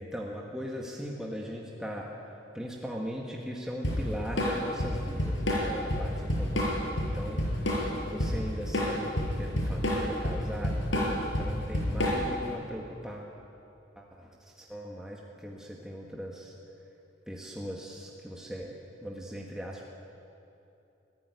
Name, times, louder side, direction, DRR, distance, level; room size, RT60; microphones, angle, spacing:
voice 1, 0.0-13.3 14.0-16.5 17.3-18.8 19.0-19.9, equal, 5° right, -2 dB, 1.8 m, -39 dB
Drum kit / Drum, 3.8-12.4, left 1 dB, 70° left, 6.1 m, -29 dB
25.0 x 16.0 x 9.6 m, 2.8 s
head